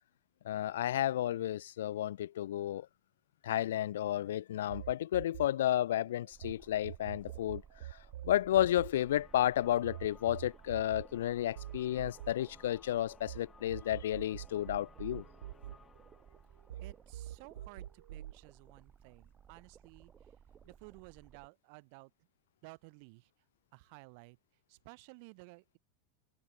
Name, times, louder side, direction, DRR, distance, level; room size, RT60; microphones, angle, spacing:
voice 1, 0.4-2.9 3.4-7.6 8.2-15.2, left 12 dB, 85° left, 0.4 m, -32 dB
sound 1, 4.7-6.5 6.8-13.4 13.7-16.4 16.7-18.3, right 13 dB, 80° right, 1.4 m, -45 dB
sound 2, 6.3-21.5, right 8 dB, 25° right, 2.6 m, -59 dB
sound 3, 8.5-18.2, left 5 dB, 15° left, 2.7 m, -63 dB
voice 2, 16.8-20.1 20.7-22.1 22.6-23.3 23.7-24.4 24.7-25.8, right 32 dB, 60° right, 4.1 m, -55 dB
supercardioid pair, 125°, 0 cm